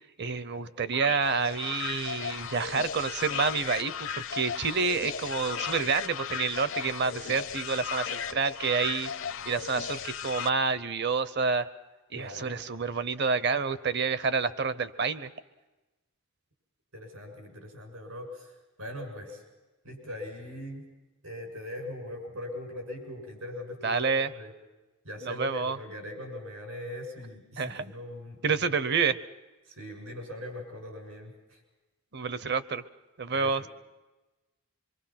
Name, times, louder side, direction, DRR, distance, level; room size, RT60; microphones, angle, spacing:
voice 1, 0.2-9.1 9.4-11.7 12.1-15.3 23.8-24.3 25.3-25.8 27.6-27.8 28.4-29.2 32.1-32.8 33.2-33.6, right 5 dB, 50° right, 14 dB, 0.8 m, -28 dB
sound 1, 0.9-10.5, left 8 dB, 60° left, 0.6 m, -36 dB
voice 2, 12.1-12.6 16.9-19.4 19.8-20.9 21.2-24.5 25.0-28.6 29.6-31.6 33.3-33.7, left 1 dB, 80° right, 2 dB, 6.7 m, -41 dB
25.0 x 24.0 x 5.9 m, 1.1 s
head